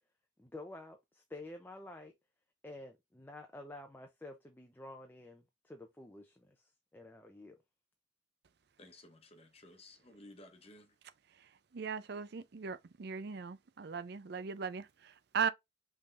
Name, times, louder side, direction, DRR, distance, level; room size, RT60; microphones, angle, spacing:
voice 1, 0.4-2.1 2.6-7.6, left 2 dB, 10° left, 0.5 m, -50 dB
voice 2, 8.8-11.0, left 1 dB, 30° left, 1.0 m, -56 dB
voice 3, 11.3-15.5, right 6 dB, 55° right, 0.5 m, -38 dB
5.4 x 3.5 x 2.5 m
head